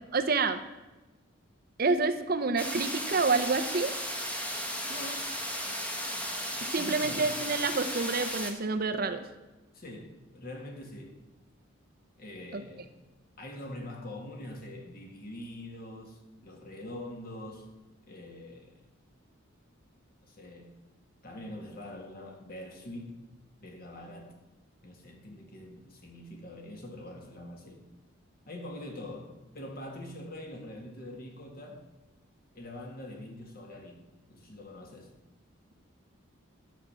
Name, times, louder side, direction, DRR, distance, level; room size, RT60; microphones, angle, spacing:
voice 1, 0.1-0.6 1.8-3.9 6.7-9.2 12.5-12.6, right 4 dB, 45° right, 9 dB, 0.6 m, -28 dB
sound 1, 2.6-8.5, equal, 5° left, 1.1 m, -35 dB
voice 2, 4.9-5.3 6.7-7.3 9.7-11.2 12.2-12.9 13.4-17.7 18.1-18.8 20.2-20.7 21.2-23.3 23.6-24.4 24.8-27.8 28.5-31.8 32.5-35.1, left 1 dB, 45° left, 2 dB, 1.9 m, -44 dB
10.5 x 7.4 x 6.9 m, 1.1 s
head